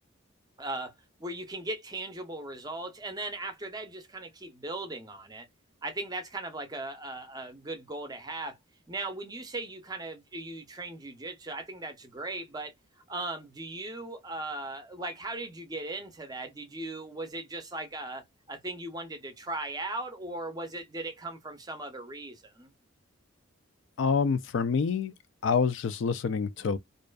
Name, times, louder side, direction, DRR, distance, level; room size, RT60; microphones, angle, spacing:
voice 1, 0.6-0.9 1.2-5.5 5.8-8.6 8.9-12.7 13.1-22.7, right 2 dB, 20° right, 0.5 m, -38 dB
voice 2, 24.0-25.1 25.4-26.8, left 5 dB, 60° left, 0.3 m, -27 dB
2.5 x 2.3 x 2.2 m
head